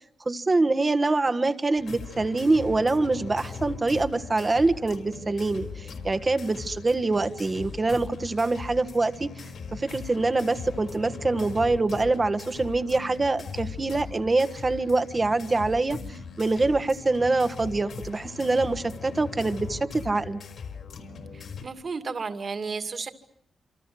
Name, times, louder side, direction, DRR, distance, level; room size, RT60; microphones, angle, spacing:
voice 1, 0.2-9.4 9.7-16.0 16.4-20.4, right 3 dB, 25° right, 9 dB, 1.4 m, -25 dB
sound 1, 1.8-21.6, left 5 dB, 65° left, 4.8 m, -40 dB
voice 2, 21.3-23.1, right 4 dB, 40° right, 10 dB, 2.4 m, -33 dB
27.5 x 27.0 x 7.8 m, 0.68 s
wide cardioid pair, 140°, 0 cm